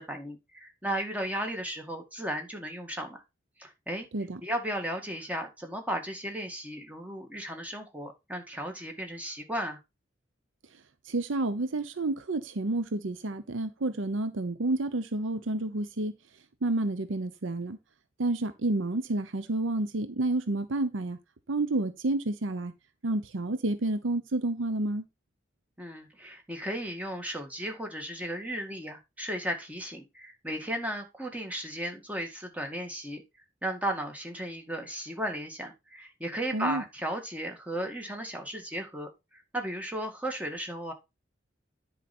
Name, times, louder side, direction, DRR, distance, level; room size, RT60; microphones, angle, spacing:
voice 1, 0.0-3.2 3.6-4.1 4.4-9.8 25.8-33.2 33.6-40.9, right 1 dB, 10° right, 1.9 m, -35 dB
voice 2, 11.0-16.2 16.6-17.8 18.2-21.2 21.5-22.7 23.0-25.0 36.5-36.8, right 2 dB, 80° right, 0.8 m, -30 dB
10.0 x 4.9 x 4.3 m
head